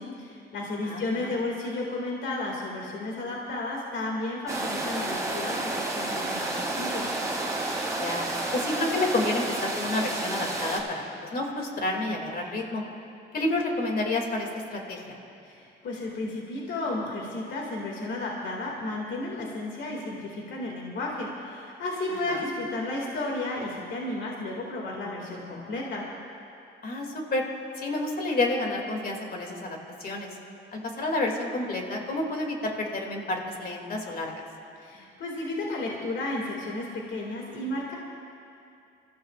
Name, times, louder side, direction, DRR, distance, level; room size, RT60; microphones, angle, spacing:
voice 1, 0.0-7.1 15.4-26.1 34.8-37.9, left 2 dB, 70° left, -2 dB, 2.4 m, -33 dB
voice 2, 0.8-1.3 8.0-8.3 8.5-12.8 13.3-15.2 22.2-22.5 26.8-27.4 27.8-30.4 30.7-34.4, left 2 dB, 50° left, 1 dB, 2.6 m, -30 dB
sound 1, 4.5-10.8, right 2 dB, 15° right, 2.7 m, -30 dB
29.0 x 14.5 x 2.5 m, 2.6 s
cardioid pair, 90°, 20 cm